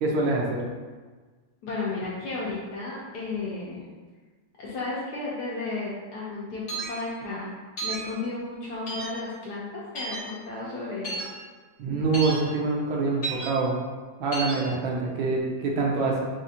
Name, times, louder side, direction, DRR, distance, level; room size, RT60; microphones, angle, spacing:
voice 1, 0.0-0.6 11.8-13.8 14.2-16.3, right 3 dB, 80° right, -2 dB, 1.4 m, -25 dB
voice 2, 1.6-3.9 4.6-7.5 7.8-9.7 9.9-11.2, left 3 dB, 70° left, -6 dB, 1.0 m, -33 dB
sound 1, 6.7-6.9 7.8-8.0 8.9-9.1 10.0-10.2 11.0-11.2 12.1-12.3 13.2-13.5 14.3-14.6, right 3 dB, 50° left, 1.2 m, -32 dB
4.2 x 2.6 x 2.4 m, 1.4 s
omnidirectional pair, 2.2 m